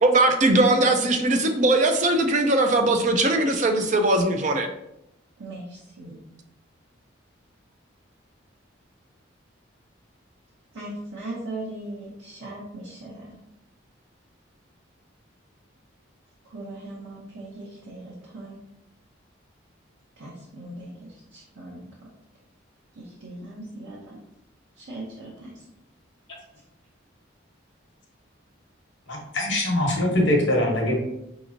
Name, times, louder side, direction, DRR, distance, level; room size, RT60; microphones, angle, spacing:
voice 1, 0.0-4.7, right 2 dB, 35° right, 5 dB, 0.4 m, -20 dB
voice 2, 5.4-6.1 10.7-13.2 16.5-18.6 20.2-21.8 23.0-24.2 24.8-25.6, right 2 dB, 90° right, -6 dB, 0.9 m, -39 dB
voice 3, 29.1-30.9, left 1 dB, 65° left, 0 dB, 1.0 m, -22 dB
5.1 x 2.9 x 2.5 m, 0.83 s
head